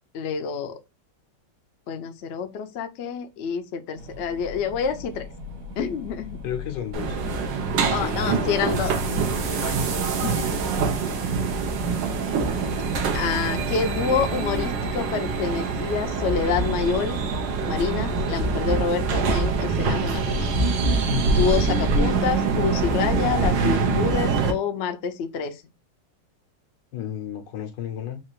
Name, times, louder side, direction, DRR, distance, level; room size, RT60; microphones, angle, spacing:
voice 1, 0.1-0.8 1.9-5.2 5.8-6.4 7.9-8.9 9.6-9.8 10.2-10.6 13.1-17.2 17.7-20.5 21.3-25.5, left 6 dB, 65° left, 0.6 m, -27 dB
sound 1, 4.0-13.4, left 3 dB, 60° right, 1.7 m, -39 dB
voice 2, 6.4-7.2 8.0-8.6 26.9-28.2, left 10 dB, 85° left, 1.5 m, -32 dB
sound 2, 6.9-24.5, right 4 dB, 85° right, 1.6 m, -24 dB
4.3 x 2.5 x 4.5 m
omnidirectional pair, 1.9 m